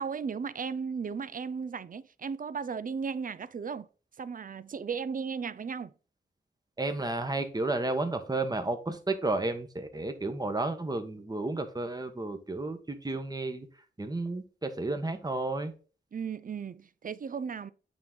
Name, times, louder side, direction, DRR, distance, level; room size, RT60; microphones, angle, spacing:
voice 1, 0.0-3.9 4.2-5.9 16.1-17.7, right 6 dB, 50° right, 0.5 m, -35 dB
voice 2, 6.8-13.7 14.0-15.7, right 2 dB, 20° right, 1.1 m, -32 dB
8.6 x 3.7 x 3.7 m
wide cardioid pair, 85°, 19 cm